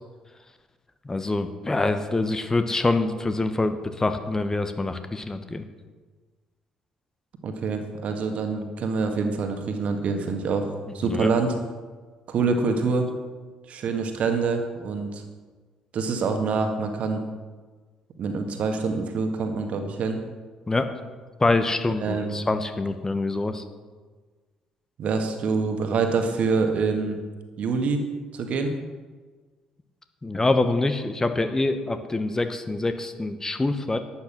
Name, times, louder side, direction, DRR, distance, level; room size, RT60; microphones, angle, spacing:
voice 1, 1.0-5.6 11.0-11.3 20.7-20.9 21.4-23.6 30.2-34.0, left 2 dB, 20° left, 9 dB, 1.1 m, -25 dB
voice 2, 7.4-10.7 10.9-11.5 12.3-13.1 13.7-15.2 15.9-17.2 18.2-20.2 22.0-22.4 25.0-27.2 27.6-28.0 28.3-28.7, right 4 dB, 50° right, 5 dB, 1.8 m, -25 dB
12.0 x 10.5 x 6.0 m, 1.4 s
figure-of-eight pair, 45°, 3 cm